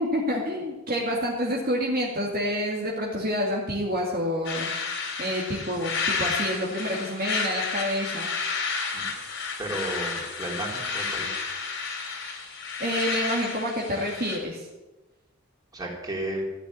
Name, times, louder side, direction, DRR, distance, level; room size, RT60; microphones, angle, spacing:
voice 1, 0.0-4.7 5.2-8.3 12.8-14.7, equal, 45° right, -3 dB, 2.2 m, -28 dB
sound 1, 4.4-14.4, left 5 dB, 65° left, 3.1 m, -31 dB
voice 2, 9.6-11.4 15.7-16.5, right 1 dB, 20° right, -3 dB, 3.9 m, -33 dB
15.0 x 7.2 x 9.8 m, 1.1 s
head